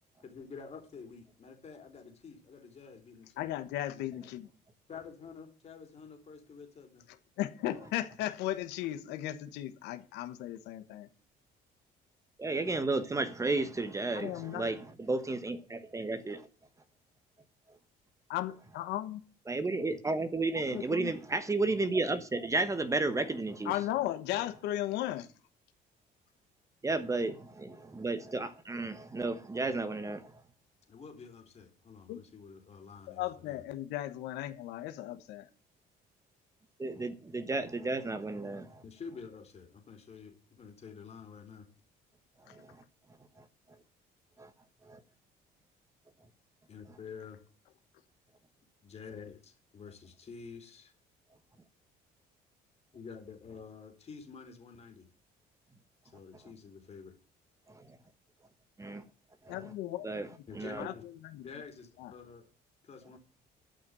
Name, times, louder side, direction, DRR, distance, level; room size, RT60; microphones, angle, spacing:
voice 1, 0.2-3.3 4.9-7.1 30.9-33.6 38.8-41.6 46.7-47.4 48.8-50.9 52.9-55.0 56.1-57.1 60.5-61.0 61.4-62.4 62.9-63.2, left 5 dB, 40° left, 3.2 m, -48 dB
voice 2, 3.4-4.5 7.1-11.1 14.1-14.8 18.3-19.2 20.7-21.1 23.6-25.3 32.1-32.2 33.1-35.5 59.5-60.3 60.8-61.5 62.0-62.1, left 13 dB, 90° left, 1.2 m, -36 dB
voice 3, 12.4-16.4 19.5-23.7 26.8-30.3 36.8-38.8 42.5-42.8 44.4-44.5 44.9-45.0 57.7-58.0 58.8-59.0 59.5-59.6 60.0-60.3 60.5-60.9, right 3 dB, 20° right, 1.2 m, -33 dB
11.5 x 5.9 x 7.6 m
cardioid pair, 110°, 17 cm